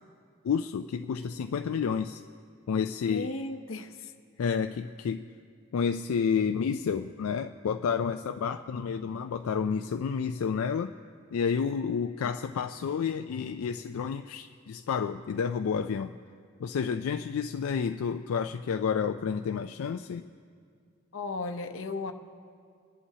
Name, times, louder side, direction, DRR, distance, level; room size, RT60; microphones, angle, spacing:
voice 1, 0.4-2.2 2.7-3.3 4.4-5.2 5.7-10.9 11.3-16.2 16.6-20.3, left 6 dB, 90° left, 7 dB, 0.4 m, -30 dB
voice 2, 3.0-4.1 9.0-9.3 21.1-22.1, left 3 dB, 70° left, 7 dB, 0.8 m, -36 dB
27.5 x 11.0 x 2.8 m, 2.2 s
head